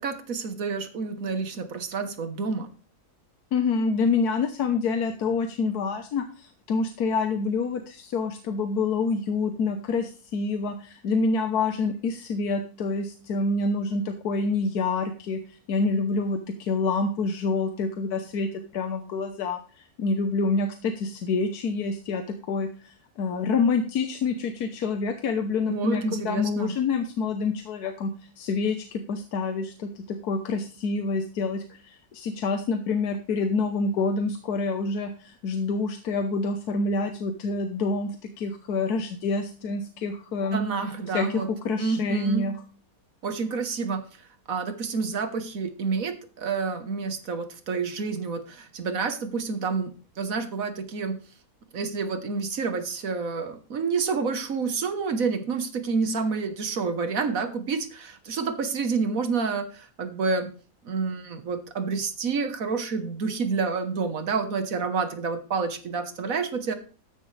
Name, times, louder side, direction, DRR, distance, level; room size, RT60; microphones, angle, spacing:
voice 1, 0.0-2.7 25.7-26.8 40.5-41.5 41.8-42.5 43.2-44.0 44.5-49.9 50.2-51.2 51.7-60.5 60.8-66.7, right 4 dB, 65° right, 9 dB, 1.6 m, -29 dB
voice 2, 3.5-15.4 15.7-28.1 28.4-40.7 41.1-42.6, left 4 dB, 85° left, 7 dB, 1.5 m, -27 dB
13.5 x 10.5 x 3.3 m, 0.37 s
omnidirectional pair, 1.6 m